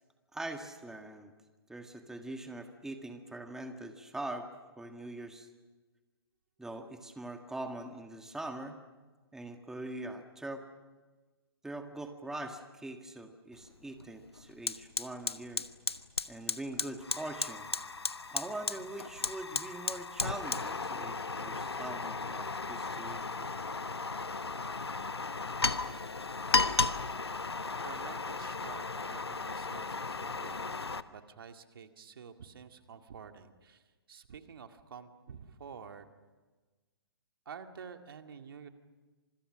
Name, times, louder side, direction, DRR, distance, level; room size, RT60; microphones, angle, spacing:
voice 1, 0.3-1.3 1.7-4.5 4.8-5.5 6.6-8.8 9.3-10.6 11.6-15.6 16.3-17.7 18.3-23.2 27.6-27.7, right 2 dB, 5° right, 5 dB, 1.7 m, -42 dB
Fire, 13.5-13.7 14.0-31.0, left 3 dB, 85° left, 1.1 m, -35 dB
voice 2, 27.8-33.8 34.1-36.0 37.5-38.7, right 6 dB, 65° right, 6 dB, 2.1 m, -49 dB
29.5 x 27.0 x 6.4 m, 1.3 s
figure-of-eight pair, 125°, 13 cm